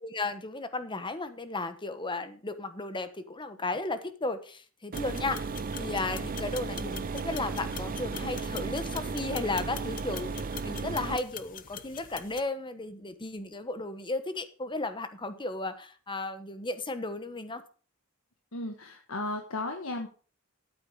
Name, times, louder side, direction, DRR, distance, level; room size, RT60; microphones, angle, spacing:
voice 1, 0.0-5.4 5.8-17.6, left 2 dB, 25° left, 1.1 m, -34 dB
sound 1, 4.9-12.4, left 8 dB, 40° left, 0.7 m, -44 dB
sound 2, 4.9-11.2, right 4 dB, 40° right, 0.4 m, -35 dB
voice 2, 18.5-20.1, left 2 dB, 75° left, 1.4 m, -35 dB
12.5 x 8.9 x 4.8 m
head